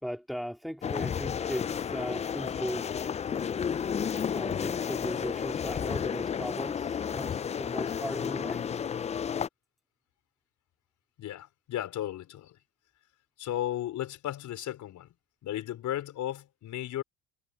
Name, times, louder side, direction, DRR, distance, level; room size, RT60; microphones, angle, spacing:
voice 1, 0.0-3.1 4.3-8.7, equal, ahead, 3.9 m, -38 dB
sound 1, 0.8-9.5, left 7 dB, 20° left, 0.4 m, -32 dB
voice 2, 11.2-12.6 13.4-15.1 15.4-17.0, left 12 dB, 55° left, 4.6 m, -35 dB
supercardioid pair, 100°, 34 cm